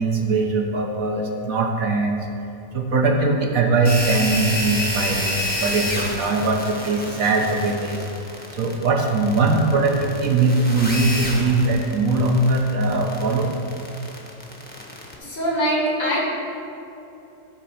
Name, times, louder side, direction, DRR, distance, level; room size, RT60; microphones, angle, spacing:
voice 1, 0.0-2.3 2.7-8.0 8.5-13.5, right 3 dB, 60° right, 1 dB, 1.2 m, -21 dB
sound 1, 3.8-15.1, left 1 dB, 5° left, 0.9 m, -29 dB
voice 2, 15.2-16.2, equal, 85° left, -5 dB, 3.0 m, -22 dB
13.0 x 4.3 x 5.7 m, 2.8 s
omnidirectional pair, 1.8 m